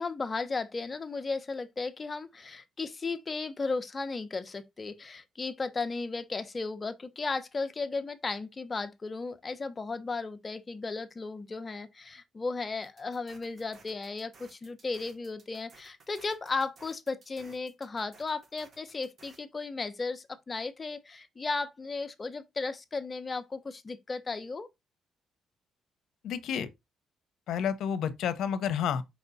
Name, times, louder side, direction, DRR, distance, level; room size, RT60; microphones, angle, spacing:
voice 1, 0.0-24.7, left 3 dB, 30° left, 1.0 m, -35 dB
sound 1, 12.8-19.4, right 4 dB, 50° right, 2.8 m, -58 dB
voice 2, 26.2-26.7 27.5-29.0, left 8 dB, 75° left, 0.8 m, -30 dB
5.3 x 4.4 x 4.0 m
cardioid pair, 90°, 0 cm